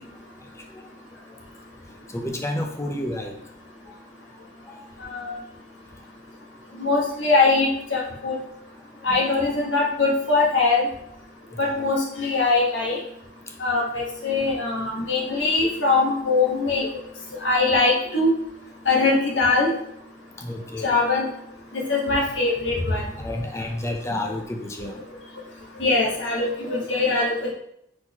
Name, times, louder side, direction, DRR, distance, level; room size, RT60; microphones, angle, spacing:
voice 1, 2.1-3.4 4.7-4.8 9.1-9.2 11.5-11.8 20.4-21.0 23.2-25.0, left 1 dB, 15° left, 2 dB, 0.5 m, -31 dB
voice 2, 6.8-8.3 9.0-10.9 11.6-13.0 13.6-16.9 17.4-18.3 18.9-19.7 20.8-21.3 21.7-23.0 25.8-27.5, left 3 dB, 75° left, -1 dB, 1.2 m, -22 dB
4.2 x 4.1 x 2.9 m, 0.75 s
head